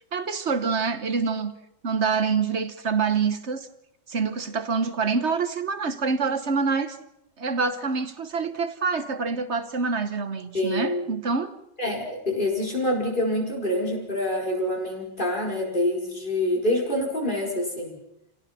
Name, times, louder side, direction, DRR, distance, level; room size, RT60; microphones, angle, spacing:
voice 1, 0.1-1.5 1.8-3.7 4.1-7.0 7.4-11.5, right 5 dB, 45° right, 1.2 m, -26 dB
voice 2, 10.5-11.0 11.8-18.0, left 1 dB, 25° left, 4.9 m, -26 dB
29.0 x 17.0 x 5.8 m
omnidirectional pair, 2.1 m